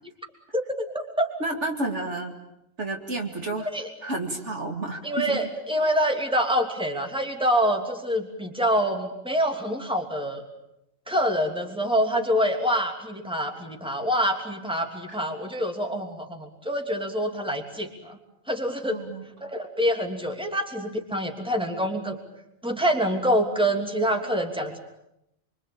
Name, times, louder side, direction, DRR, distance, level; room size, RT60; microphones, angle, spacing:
voice 1, 0.5-1.3 3.7-3.9 5.0-10.4 11.1-18.2 18.5-19.0 19.4-22.2 22.6-24.8, equal, 5° right, 3 dB, 3.1 m, -26 dB
voice 2, 1.4-2.3 2.8-3.7 4.0-5.5 18.9-19.2, right 2 dB, 60° right, 3 dB, 2.9 m, -30 dB
26.0 x 25.0 x 8.9 m, 0.83 s
omnidirectional pair, 1.4 m